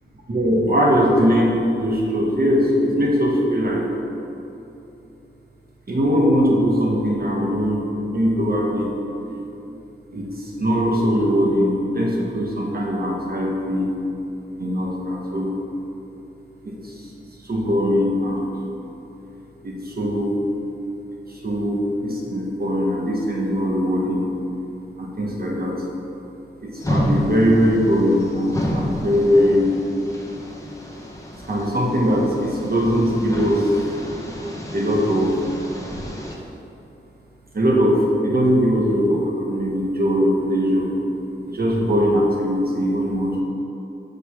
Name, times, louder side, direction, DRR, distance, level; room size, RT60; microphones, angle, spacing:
voice 1, 0.3-3.9 5.9-7.9 8.1-8.9 10.1-13.9 14.6-15.5 16.6-17.1 17.4-18.4 19.6-20.4 21.3-24.2 25.0-25.8 26.6-29.7 31.4-33.8 34.7-35.4 37.5-40.9 41.4-43.4, equal, 50° right, -2 dB, 1.3 m, -20 dB
sound 1, 26.8-36.4, equal, 15° left, 1.0 m, -29 dB
6.6 x 5.3 x 5.9 m, 2.9 s
wide cardioid pair, 90°, 20 cm